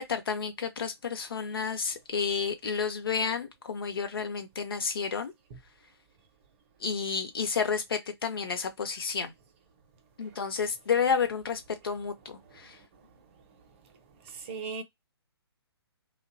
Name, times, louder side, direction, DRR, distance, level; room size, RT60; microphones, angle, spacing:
voice 1, 0.0-5.3 6.8-9.3 10.2-12.8, left 6 dB, 60° left, 0.7 m, -31 dB
voice 2, 14.3-14.8, right 5 dB, 30° right, 0.6 m, -38 dB
2.5 x 2.2 x 2.5 m
figure-of-eight pair, 130°, 14 cm